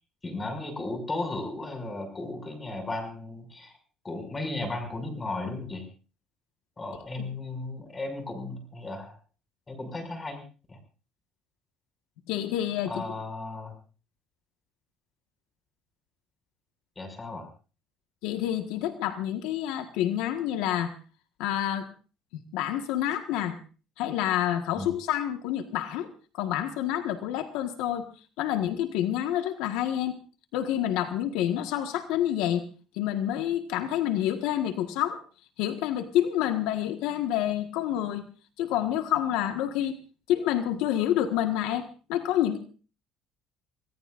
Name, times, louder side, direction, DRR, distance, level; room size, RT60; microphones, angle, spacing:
voice 1, 0.2-3.7 4.0-5.8 6.8-9.1 9.7-10.8 12.8-13.8 17.0-17.5 24.7-24.9, left 2 dB, 20° left, 5 dB, 6.0 m, -35 dB
voice 2, 12.3-13.1 18.2-20.9 21.4-21.9 22.5-23.6 24.0-28.1 28.4-30.1 30.5-32.6 32.9-35.2 35.6-38.2 38.6-39.9 40.3-42.6, left 11 dB, 85° left, 7 dB, 1.5 m, -28 dB
27.0 x 18.5 x 2.6 m, 0.36 s
cardioid pair, 120°, 0 cm